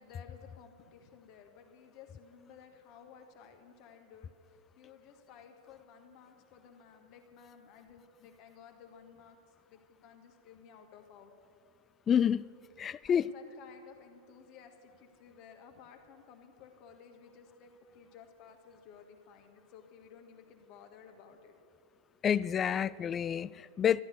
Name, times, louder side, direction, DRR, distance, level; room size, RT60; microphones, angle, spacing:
voice 1, 0.0-4.3 4.7-9.4 9.6-11.3 13.1-21.5, left 7 dB, 40° left, 5 dB, 1.5 m, -55 dB
voice 2, 12.1-12.5 12.8-13.3 22.2-24.0, left 8 dB, 25° left, 20 dB, 0.3 m, -28 dB
14.0 x 11.5 x 6.4 m, 2.4 s
figure-of-eight pair, 90°, 0 cm